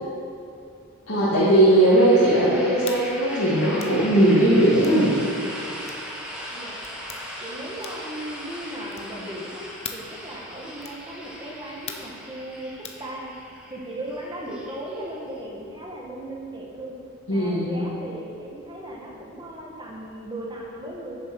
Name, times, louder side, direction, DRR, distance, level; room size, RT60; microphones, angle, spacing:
voice 1, 1.1-5.1 17.3-17.8, right 1 dB, 75° left, -11 dB, 2.3 m, -18 dB
sound 1, 1.6-15.4, equal, 5° right, 1.1 m, -38 dB
sound 2, 2.8-3.0 3.8-4.0 4.8-5.0 5.8-6.1 6.8-7.2 7.8-8.1 8.9-9.2 9.8-10.1 10.8-11.0 11.9-12.2 12.8-13.0, left 7 dB, 30° left, 0.7 m, -39 dB
voice 2, 6.5-6.8 7.4-9.6 9.9-12.7 13.0-13.3 13.7-17.0 17.3-21.2, right 1 dB, 20° right, -3 dB, 1.5 m, -37 dB
8.7 x 7.0 x 6.3 m, 2.6 s
head